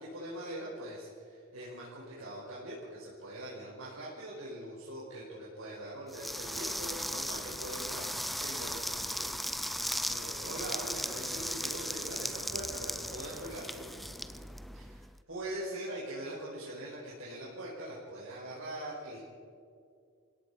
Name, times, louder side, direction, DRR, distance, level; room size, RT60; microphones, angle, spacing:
voice 1, 0.0-9.4 10.1-13.9 14.7-19.2, right 1 dB, 75° right, -7 dB, 5.3 m, -42 dB
sound 1, 6.1-15.1, equal, ahead, 0.4 m, -37 dB
29.0 x 17.0 x 5.3 m, 2.4 s
head